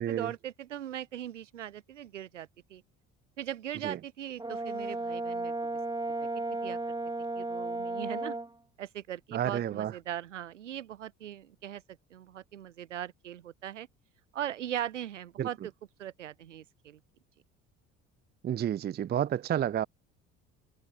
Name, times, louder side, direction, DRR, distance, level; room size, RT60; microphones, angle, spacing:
voice 1, 0.0-2.8 3.4-5.7 6.2-6.8 7.4-8.3 8.8-11.8 12.1-13.9 14.3-15.6 16.0-17.0, right 11 dB, 75° right, 4.7 m, -39 dB
Brass instrument, 4.4-8.5, right 2 dB, 10° right, 4.7 m, -34 dB
voice 2, 9.3-9.9 15.4-15.5 18.4-19.9, right 10 dB, 25° right, 0.6 m, -30 dB
figure-of-eight pair, 55°, 37 cm